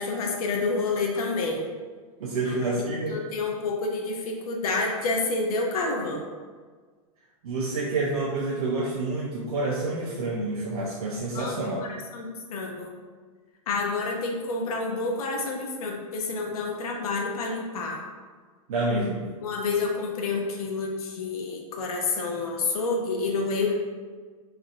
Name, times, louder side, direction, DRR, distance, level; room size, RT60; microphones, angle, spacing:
voice 1, 0.0-1.7 2.8-6.3 11.3-12.9 13.7-18.0 19.4-23.7, left 3 dB, 80° left, 0 dB, 0.7 m, -29 dB
voice 2, 2.2-3.1 7.4-11.8 18.7-19.2, right 2 dB, 85° right, -4 dB, 0.7 m, -28 dB
3.2 x 2.5 x 4.0 m, 1.5 s
hypercardioid pair, 125°, 18 cm